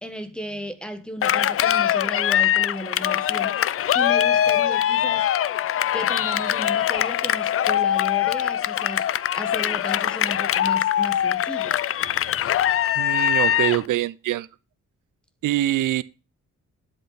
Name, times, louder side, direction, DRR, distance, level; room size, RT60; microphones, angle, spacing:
voice 1, 0.0-3.6 3.9-5.3 5.9-9.1 9.3-11.8, equal, 5° left, 1.4 m, -35 dB
Cheering, 1.2-13.9, left 10 dB, 45° left, 0.5 m, -22 dB
voice 2, 13.0-14.5 15.4-16.0, right 14 dB, 85° right, 0.7 m, -24 dB
12.0 x 8.0 x 4.1 m
wide cardioid pair, 165°, 31 cm